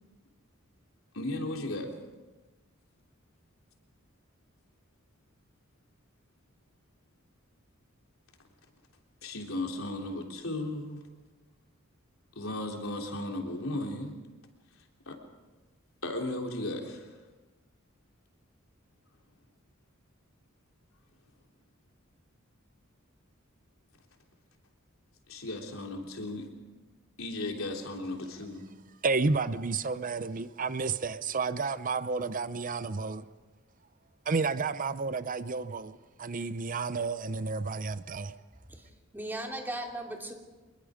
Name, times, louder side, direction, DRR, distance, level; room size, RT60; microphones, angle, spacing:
voice 1, 1.1-1.9 9.2-11.0 12.4-14.1 15.1-15.2 16.0-17.1 25.3-26.5 27.2-28.6, left 2 dB, 90° left, 3.5 m, -35 dB
voice 2, 29.0-33.2 34.3-38.3, right 4 dB, 40° right, 0.7 m, -31 dB
voice 3, 38.7-40.3, right 1 dB, 10° right, 2.9 m, -38 dB
25.5 x 21.5 x 5.1 m
head